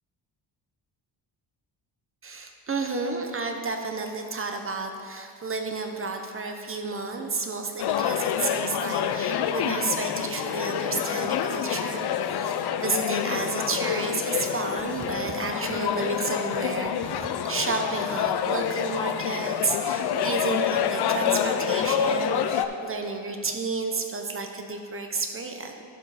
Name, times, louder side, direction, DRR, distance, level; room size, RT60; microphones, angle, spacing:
voice 1, 2.2-25.8, right 3 dB, 30° right, 4 dB, 0.8 m, -31 dB
sound 1, 7.8-22.7, left 8 dB, 60° left, 0.6 m, -27 dB
12.0 x 5.2 x 4.1 m, 2.4 s
cardioid pair, 95°, 45 cm